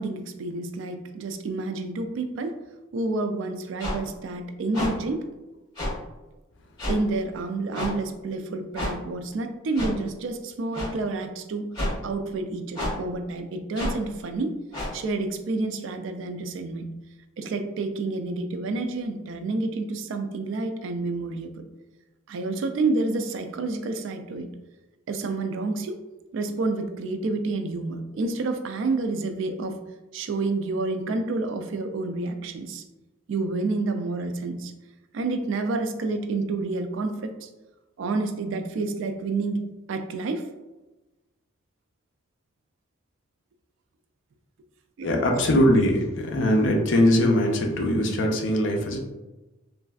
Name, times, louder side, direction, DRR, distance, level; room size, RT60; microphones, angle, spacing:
voice 1, 0.0-2.6 2.9-5.3 6.9-11.6 12.0-14.6 14.9-16.9 17.4-21.5 22.3-24.5 25.1-26.0 26.3-29.8 30.1-32.8 33.3-34.7 35.1-37.5 38.0-39.6 39.9-40.5 45.0-45.1, right 3 dB, 70° right, 7 dB, 0.3 m, -29 dB
sound 1, 3.8-4.0 4.7-4.9 5.8-5.9 6.8-7.0 7.7-7.9 8.7-8.9 9.7-9.9 10.7-10.9 11.7-11.9 12.7-12.9 13.7-13.9 14.7-14.9, left 1 dB, 20° left, 1.4 m, -28 dB
voice 2, 45.0-49.0, left 1 dB, 65° left, 2 dB, 0.5 m, -21 dB
3.1 x 2.5 x 2.3 m, 1.1 s
head